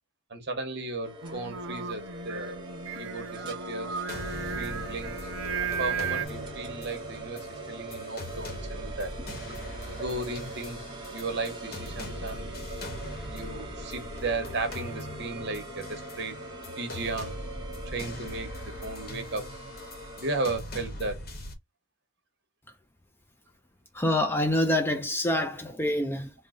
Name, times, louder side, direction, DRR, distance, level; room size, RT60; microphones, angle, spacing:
voice 1, 0.3-2.6 3.0-4.2 4.5-5.2 5.6-9.1 9.9-10.8 11.1-12.6 13.3-16.3 16.8-17.3 17.8-19.5 20.2-21.2, right 2 dB, 55° right, 1.1 m, -35 dB
sound 1, 1.0-20.6, right 1 dB, 20° right, 0.9 m, -42 dB
Singing, 1.2-6.3, right 6 dB, 80° right, 0.5 m, -35 dB
sound 2, 4.1-21.5, left 1 dB, 50° left, 0.9 m, -41 dB
voice 2, 23.9-26.3, left 1 dB, 10° left, 0.4 m, -26 dB
3.7 x 2.1 x 3.7 m
head